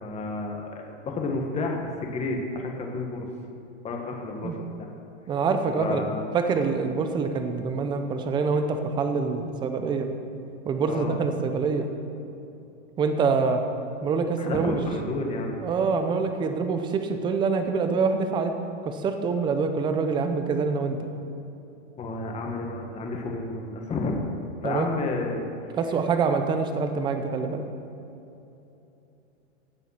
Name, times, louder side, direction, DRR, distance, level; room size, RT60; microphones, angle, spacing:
voice 1, 0.0-3.3 3.8-4.9 5.7-6.2 10.9-11.2 14.4-15.6 22.0-24.2 24.6-25.5, left 3 dB, 15° left, 1 dB, 1.5 m, -31 dB
voice 2, 5.3-6.1 6.3-10.1 10.6-11.9 13.0-13.6 14.0-14.8 15.6-18.5 18.8-21.1 24.6-24.9 25.7-27.6, right 5 dB, 10° right, 7 dB, 0.6 m, -25 dB
15.5 x 7.4 x 5.8 m, 2.9 s
supercardioid pair, 155°, 38 cm